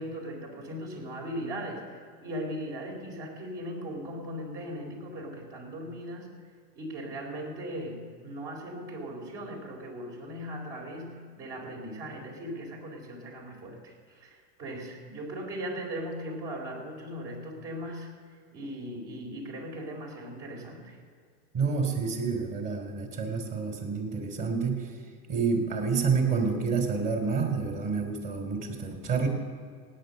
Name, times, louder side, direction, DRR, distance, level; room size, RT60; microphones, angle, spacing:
voice 1, 0.0-1.9 2.2-6.3 6.7-18.1 18.5-21.0, equal, 60° right, 1 dB, 4.6 m, -38 dB
voice 2, 21.5-24.9 25.3-29.3, right 5 dB, 40° right, 3 dB, 3.4 m, -28 dB
17.0 x 9.7 x 6.7 m, 2.1 s
hypercardioid pair, 105°, 48 cm